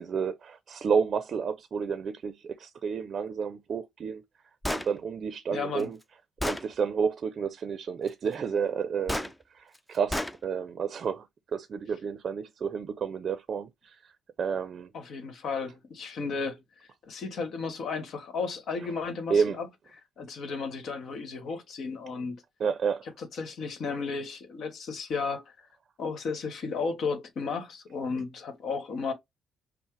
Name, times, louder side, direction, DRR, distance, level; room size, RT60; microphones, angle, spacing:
voice 1, 0.0-4.2 4.7-6.0 6.4-11.3 11.5-14.1 14.4-14.9 19.3-19.6 22.6-23.0, right 6 dB, 55° right, 0.5 m, -30 dB
Gunshot gunfire, 4.6-4.9 5.8-5.9 6.4-6.7 9.1-9.3 10.1-10.4, left 1 dB, 10° left, 0.5 m, -30 dB
voice 2, 5.5-5.9 14.9-16.6 17.1-19.7 20.2-22.4 23.2-25.4 26.0-29.1, left 4 dB, 65° left, 1.3 m, -34 dB
5.5 x 2.1 x 3.2 m
cardioid pair, 90°, 0 cm